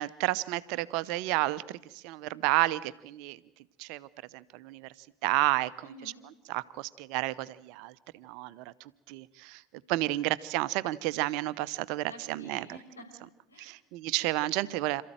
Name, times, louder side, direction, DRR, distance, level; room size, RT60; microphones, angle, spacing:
voice 1, 0.0-3.4 3.8-4.1 4.3-4.9 5.2-5.7 6.5-8.7 9.1-9.6 9.9-12.7 13.6-15.0, right 18 dB, 55° right, 16 dB, 0.8 m, -31 dB
voice 2, 5.8-6.2 12.1-13.8, equal, 85° left, 0 dB, 5.5 m, -50 dB
28.0 x 14.0 x 9.0 m, 0.87 s
figure-of-eight pair, 70°, 0 cm